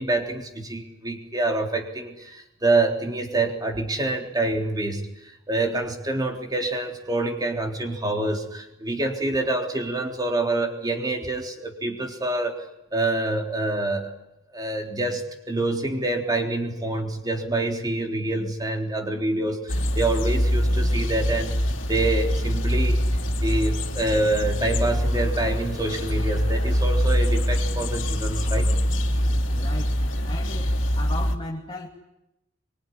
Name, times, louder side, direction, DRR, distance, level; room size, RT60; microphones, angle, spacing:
voice 1, 0.0-5.1 5.5-12.6 12.9-14.1 14.5-21.5 21.9-23.0 23.4-28.7, right 2 dB, 20° right, 2 dB, 3.7 m, -26 dB
sound 1, 19.7-31.4, equal, 70° left, 3.0 m, -24 dB
voice 2, 29.5-30.0 30.2-31.9, left 2 dB, 25° left, -1 dB, 2.7 m, -36 dB
24.5 x 24.0 x 10.0 m, 0.87 s
head